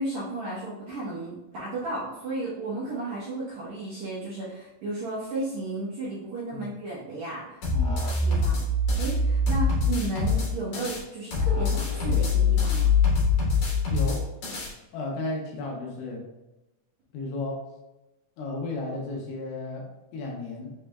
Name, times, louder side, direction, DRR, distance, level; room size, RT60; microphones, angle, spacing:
voice 1, 0.0-7.6 8.0-8.6 9.0-12.9, right 2 dB, 70° right, -9 dB, 1.7 m, -34 dB
sound 1, 7.6-11.0 11.3-14.7, left 4 dB, 60° left, 2.1 m, -24 dB
voice 2, 7.7-8.1 13.9-14.3 14.9-16.3 17.1-17.7 18.4-20.7, left 2 dB, 80° left, 0 dB, 2.5 m, -34 dB
6.1 x 3.3 x 2.2 m, 0.98 s
omnidirectional pair, 4.4 m